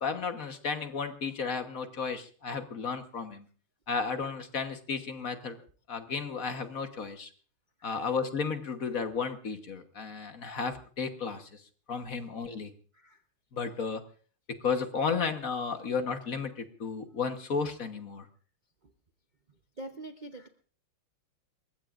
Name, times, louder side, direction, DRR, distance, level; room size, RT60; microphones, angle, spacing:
voice 1, 0.0-3.5 3.9-5.6 5.9-7.3 7.8-11.6 11.9-12.7 13.5-14.0 14.6-18.3, left 5 dB, 45° left, 7 dB, 1.4 m, -33 dB
voice 2, 19.8-20.5, right 2 dB, 85° right, 5 dB, 0.4 m, -44 dB
28.5 x 15.5 x 2.5 m, 0.42 s
omnidirectional pair, 2.4 m